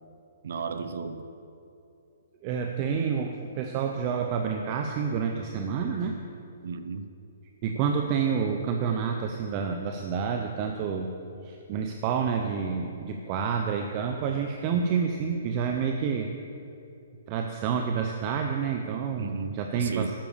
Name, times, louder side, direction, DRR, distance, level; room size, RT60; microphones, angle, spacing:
voice 1, 0.4-1.2 6.6-7.1 19.2-20.1, right 5 dB, 65° right, 9 dB, 0.7 m, -34 dB
voice 2, 2.4-6.1 7.6-11.1 11.4-16.3 17.3-20.1, right 6 dB, 30° right, 4 dB, 0.6 m, -28 dB
11.5 x 6.9 x 6.8 m, 2.8 s
hypercardioid pair, 160°, 0 cm